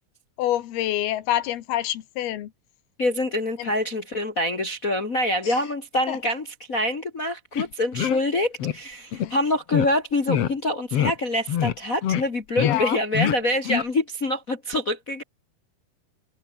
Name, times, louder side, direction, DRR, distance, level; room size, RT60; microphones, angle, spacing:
voice 1, 0.4-2.5 3.6-3.7 5.4-5.6 6.1-6.2 9.2-9.3 12.6-13.0, left 13 dB, 90° left, 3.5 m, -27 dB
voice 2, 3.0-15.2, left 1 dB, 35° left, 1.3 m, -25 dB
sound 1, 7.5-7.7 7.9-8.2 8.6-8.8 9.1-9.3 9.7-9.9 10.3-10.5 10.9-11.1 11.5-11.8 12.0-12.2 12.6-12.8 13.1-13.4 13.6-13.8, left 10 dB, 55° left, 1.8 m, -24 dB
omnidirectional pair, 4.3 m